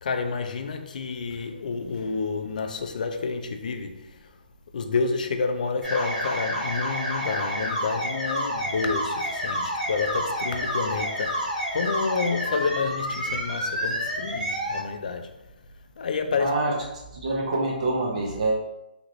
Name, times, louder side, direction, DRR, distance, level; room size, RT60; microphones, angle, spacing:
voice 1, 0.0-4.3 4.7-15.4 16.0-16.5, left 4 dB, 50° left, 0.4 m, -29 dB
sound 1, 5.8-14.8, equal, 5° right, 1.1 m, -29 dB
voice 2, 16.4-16.7 17.1-18.6, right 2 dB, 40° right, 0.6 m, -25 dB
2.9 x 2.9 x 2.5 m
hypercardioid pair, 170°, 5 cm